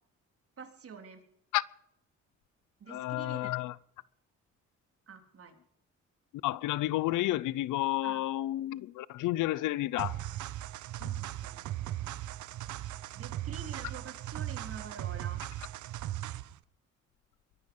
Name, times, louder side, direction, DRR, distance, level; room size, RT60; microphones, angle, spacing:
voice 1, 0.6-1.2 2.8-3.5 5.1-5.6 8.0-8.2 11.1-11.7 13.1-15.4, right 6 dB, 50° right, 3.5 m, -47 dB
voice 2, 2.9-3.7 6.4-10.2 11.0-11.1, left 16 dB, 85° left, 0.7 m, -31 dB
sound 1, 10.0-16.6, right 13 dB, 75° right, 0.9 m, -38 dB
23.0 x 10.5 x 5.4 m
cardioid pair, 90°, 30 cm